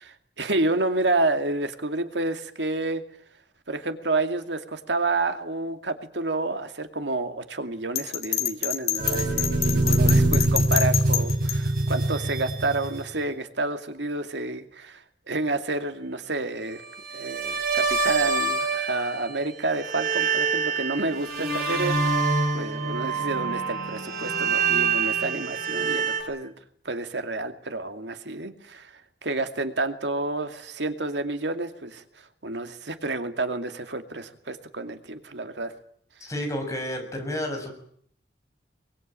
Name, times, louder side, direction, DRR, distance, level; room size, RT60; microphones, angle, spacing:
voice 1, 0.0-3.0 3.7-16.8 17.1-22.3 22.5-26.5 26.8-28.9 29.2-32.0 32.4-35.7, right 2 dB, 90° right, 7 dB, 2.4 m, -29 dB
Bell, 8.0-11.6, left 11 dB, 40° left, 2.5 m, -26 dB
sound 1, 9.0-13.2 17.0-19.4 19.7-26.2, right 3 dB, 55° right, 7.4 m, -25 dB
voice 2, 36.2-37.7, left 1 dB, 20° left, 2 dB, 6.9 m, -30 dB
24.0 x 23.0 x 9.0 m, 0.64 s
head